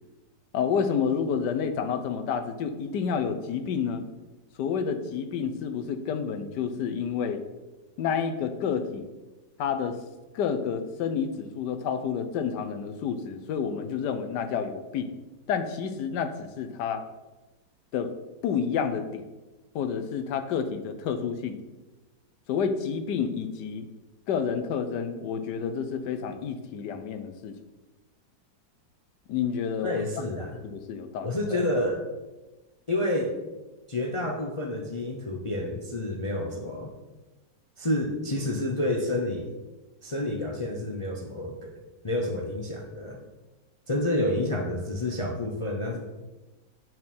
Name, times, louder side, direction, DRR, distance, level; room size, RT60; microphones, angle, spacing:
voice 1, 0.5-4.1 4.6-7.4 8.0-9.1 9.6-10.0 10.3-15.1 15.5-17.0 17.9-18.1 18.4-19.2 19.7-21.6 22.5-23.9 24.3-27.6 29.3-30.0 30.4-31.6, left 7 dB, 75° left, 8 dB, 1.4 m, -29 dB
voice 2, 29.8-30.6 31.2-32.0 32.9-33.4 33.9-36.9 37.8-39.4 40.0-41.7 42.0-43.2 43.9-46.0, left 1 dB, 35° left, 1 dB, 0.5 m, -29 dB
8.6 x 6.4 x 4.3 m, 1.1 s
omnidirectional pair, 1.9 m